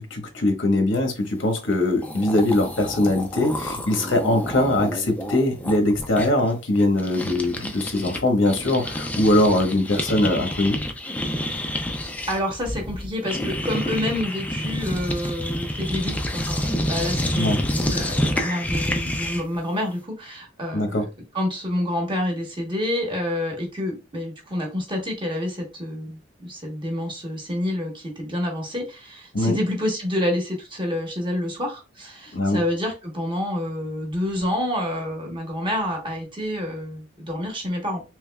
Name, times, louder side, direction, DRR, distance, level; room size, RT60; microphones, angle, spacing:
voice 1, 0.0-10.8 17.4-17.6 20.7-21.0 29.3-29.6 32.3-32.6, left 1 dB, 85° left, 4 dB, 1.0 m, -21 dB
sound 1, 1.7-1.8 2.0-8.2 8.5-19.6, left 1 dB, 10° left, 0.4 m, -28 dB
voice 2, 12.0-21.0 21.3-38.0, left 1 dB, 25° right, 1 dB, 1.1 m, -28 dB
3.4 x 3.1 x 2.2 m, 0.29 s
head